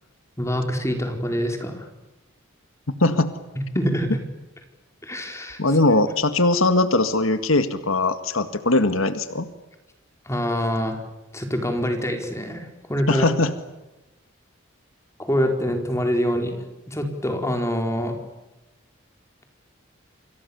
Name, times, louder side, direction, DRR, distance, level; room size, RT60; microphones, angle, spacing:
voice 1, 0.4-1.9 3.6-4.1 5.0-5.6 10.3-11.0 11.3-13.3 15.2-18.2, equal, 15° left, 5 dB, 4.4 m, -25 dB
voice 2, 3.0-3.3 5.6-9.5 13.1-13.5, left 2 dB, 85° left, 10 dB, 2.0 m, -20 dB
29.5 x 26.0 x 7.1 m, 1.0 s
head